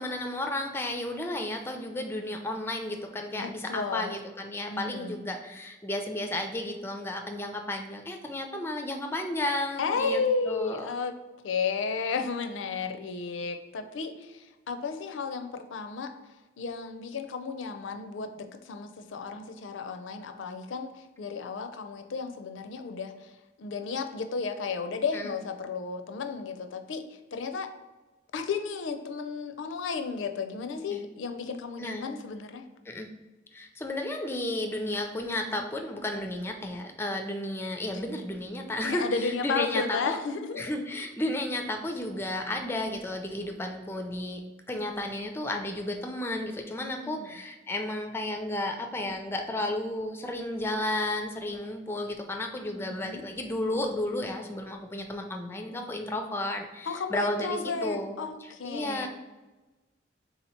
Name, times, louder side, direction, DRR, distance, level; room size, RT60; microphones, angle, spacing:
voice 1, 0.0-10.9 25.1-25.3 30.9-31.0 31.8-32.1 32.9-33.1 33.5-40.2 40.6-44.4 44.7-58.2 58.6-59.1, left 1 dB, 10° left, 4 dB, 0.4 m, -33 dB
voice 2, 3.3-4.2 4.7-5.2 9.8-11.1 11.4-16.1 16.6-23.3 23.6-27.0 27.3-27.7 28.3-32.6 38.8-40.6 47.0-47.4 52.7-53.2 56.9-59.1, left 5 dB, 70° left, 7 dB, 0.4 m, -33 dB
3.8 x 2.8 x 4.2 m, 1.2 s
head